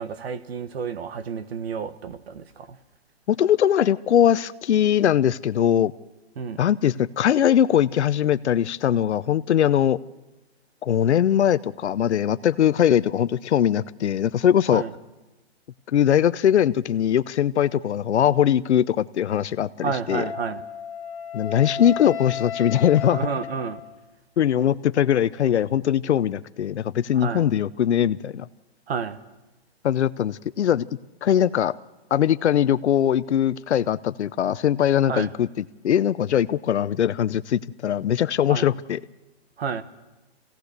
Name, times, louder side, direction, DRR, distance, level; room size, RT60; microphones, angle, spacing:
voice 1, 0.0-2.8 6.4-6.6 14.7-14.9 19.8-20.6 23.1-23.8 27.1-27.4 28.9-29.2 35.1-35.3 38.5-38.7 39.6-39.8, right 6 dB, 65° right, 1.4 m, -30 dB
voice 2, 3.3-5.9 6.6-10.0 10.8-14.8 15.9-20.2 21.3-23.2 24.4-28.5 29.8-30.8 31.2-31.7 32.1-35.5 35.8-39.0, left 10 dB, 85° left, 0.7 m, -21 dB
Wind instrument woodwind instrument, 20.1-24.1, left 7 dB, 60° left, 2.2 m, -34 dB
25.0 x 17.0 x 6.6 m
hypercardioid pair, 165°, 33 cm